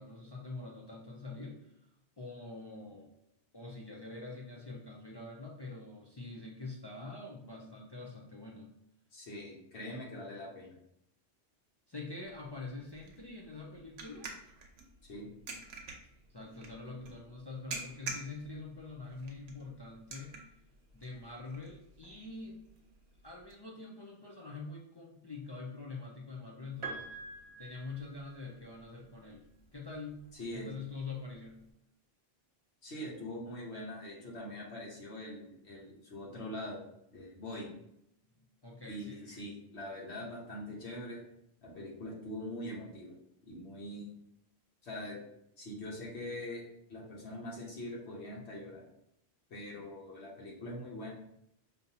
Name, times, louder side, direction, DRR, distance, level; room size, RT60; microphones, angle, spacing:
voice 1, 0.0-1.7 2.2-3.1 3.5-8.7 11.9-14.3 16.3-20.4 20.9-22.6 23.2-27.1 27.6-29.5 29.7-30.3 30.5-31.6 38.2-38.3 38.6-39.5, left 3 dB, 40° left, -2 dB, 0.3 m, -45 dB
voice 2, 9.1-10.7 15.1-15.3 30.3-30.7 32.8-36.8 37.1-37.7 38.8-41.2 41.6-43.1 43.4-44.1 44.8-45.2 45.6-46.6 46.9-48.9 49.5-51.1, left 1 dB, 85° left, -3 dB, 1.3 m, -43 dB
sound 1, 12.2-23.5, right 3 dB, 75° right, 1.0 m, -49 dB
Piano, 26.8-28.8 30.1-30.2, right 3 dB, 30° right, 0.8 m, -45 dB
5.1 x 2.7 x 2.7 m, 0.77 s
omnidirectional pair, 1.1 m